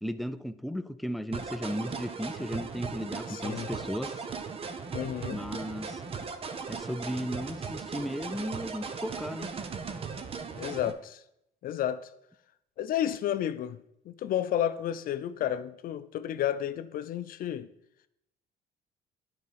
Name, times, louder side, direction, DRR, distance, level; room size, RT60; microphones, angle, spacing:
voice 1, 0.0-4.3 5.3-6.0 6.7-9.5, equal, ahead, 0.3 m, -35 dB
sound 1, 1.3-10.9, right 5 dB, 35° right, 0.7 m, -38 dB
voice 2, 3.3-3.7 4.9-5.4 10.6-11.2 11.6-12.1 12.8-13.8 14.1-17.7, left 11 dB, 55° left, 0.5 m, -31 dB
10.5 x 4.8 x 3.4 m
cardioid pair, 110°, 17 cm